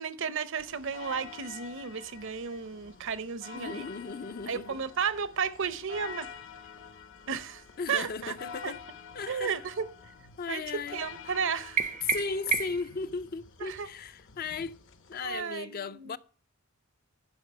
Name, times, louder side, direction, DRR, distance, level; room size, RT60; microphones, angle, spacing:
voice 1, 0.0-3.8 4.5-6.3 7.3-7.6 7.9-8.4 8.6-8.7 9.3-9.9 10.5-10.6 10.9-11.8 13.6-13.9 15.2-16.2, right 6 dB, 65° right, 0.8 m, -33 dB
sound 1, 0.6-15.4, left 6 dB, 60° left, 0.9 m, -48 dB
voice 2, 3.5-4.8 7.8-8.8 9.1-9.6 10.4-11.0 12.0-14.8 15.1-16.2, left 5 dB, 45° left, 0.4 m, -36 dB
sound 2, 11.8-13.0, right 6 dB, 35° right, 0.4 m, -30 dB
10.5 x 5.1 x 6.5 m
head